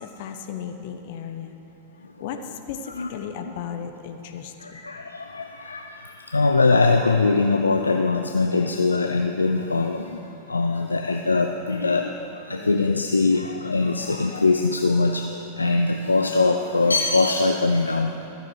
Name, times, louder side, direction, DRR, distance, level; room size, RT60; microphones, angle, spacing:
voice 1, 0.0-1.6 2.2-4.8, left 7 dB, 50° left, 6 dB, 1.0 m, -35 dB
voice 2, 4.6-18.3, left 3 dB, 80° left, 4 dB, 0.5 m, -22 dB
14.0 x 7.1 x 7.8 m, 2.9 s
figure-of-eight pair, 90°, 0 cm